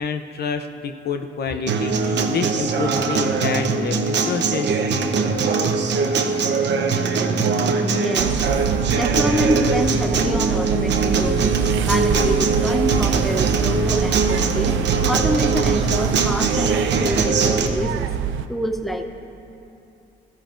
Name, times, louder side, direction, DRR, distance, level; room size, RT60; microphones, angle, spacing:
voice 1, 0.0-4.8, left 5 dB, 55° left, 6 dB, 0.6 m, -28 dB
Acoustic guitar, 1.7-17.7, right 4 dB, 60° right, 0.9 m, -21 dB
voice 2, 7.8-8.5 8.9-11.6 11.8-18.1 18.5-19.0, equal, ahead, 5 dB, 0.8 m, -26 dB
sound 1, 8.2-18.5, right 9 dB, 80° right, 0.5 m, -25 dB
15.5 x 14.0 x 2.6 m, 2.7 s
cardioid pair, 90°, 20 cm